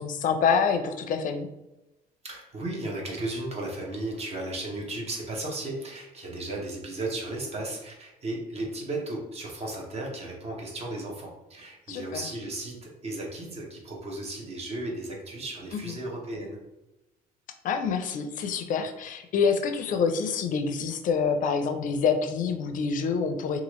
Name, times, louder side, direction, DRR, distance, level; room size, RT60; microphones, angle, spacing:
voice 1, 0.0-1.5 11.9-12.3 17.6-23.6, left 6 dB, 50° left, 7 dB, 0.4 m, -26 dB
voice 2, 2.2-16.6, right 2 dB, 40° right, 0 dB, 0.9 m, -35 dB
2.9 x 2.4 x 3.0 m, 0.97 s
cardioid pair, 110°, 17 cm